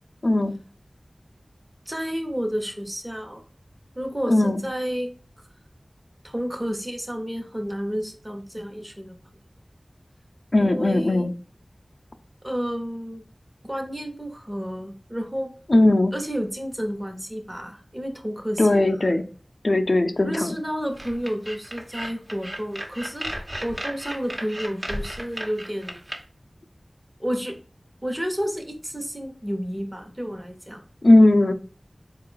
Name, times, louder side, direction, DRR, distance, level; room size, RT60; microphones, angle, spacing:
voice 1, 0.2-0.5 4.3-4.6 10.5-11.3 15.7-16.1 18.6-19.2 19.6-20.3 31.0-31.5, left 1 dB, 55° left, 7 dB, 0.5 m, -18 dB
voice 2, 1.9-3.4 3.9-5.1 6.2-9.1 10.6-11.3 12.4-13.2 13.6-15.5 16.1-19.1 20.2-26.0 27.2-27.6 28.0-30.8, equal, 20° right, 3 dB, 0.9 m, -31 dB
sound 1, 20.9-26.2, right 1 dB, 45° right, 1.1 m, -34 dB
4.2 x 2.4 x 3.8 m, 0.41 s
wide cardioid pair, 50°, 0 cm